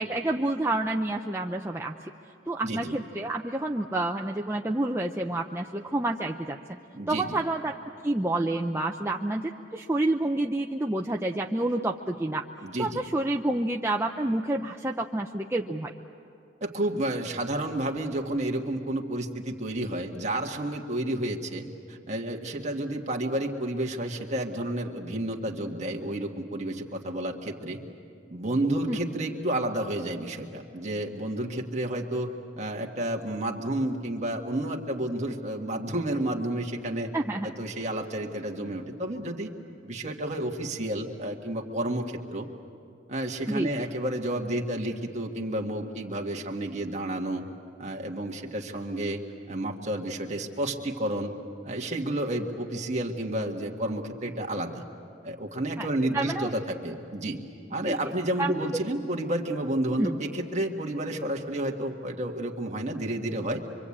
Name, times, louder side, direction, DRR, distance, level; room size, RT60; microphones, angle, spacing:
voice 1, 0.0-2.1 2.5-6.8 7.1-7.7 8.0-12.4 12.8-15.9 28.9-29.0 37.1-37.5 43.5-43.7 55.8-55.9 56.1-56.5 57.8-58.0 58.4-58.7 60.0-60.1, right 2 dB, 15° right, 1 dB, 0.6 m, -28 dB
voice 2, 2.6-3.0 6.9-7.4 12.6-13.0 16.6-27.8 28.3-32.3 32.6-37.1 37.4-39.5 39.8-42.5 43.1-47.5 47.8-49.2 49.5-51.3 51.6-54.8 55.2-57.4 57.7-63.6, right 1 dB, 35° right, 1 dB, 1.8 m, -31 dB
25.0 x 25.0 x 8.6 m, 2.5 s
head